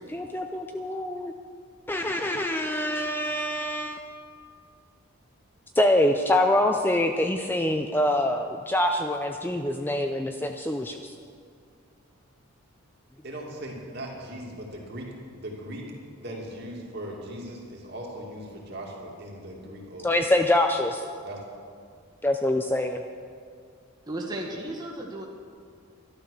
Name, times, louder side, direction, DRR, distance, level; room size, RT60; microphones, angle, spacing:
voice 1, 0.1-1.3 1.9-4.1 5.8-11.1 20.0-21.0 22.2-23.0, left 1 dB, 10° left, 5 dB, 0.4 m, -25 dB
voice 2, 13.2-15.1 15.4-15.8 16.2-20.3 21.2-21.4, right 1 dB, 50° right, -2 dB, 2.5 m, -39 dB
voice 3, 24.1-25.3, right 1 dB, 20° right, -1 dB, 1.5 m, -34 dB
12.5 x 12.0 x 6.5 m, 2.2 s
head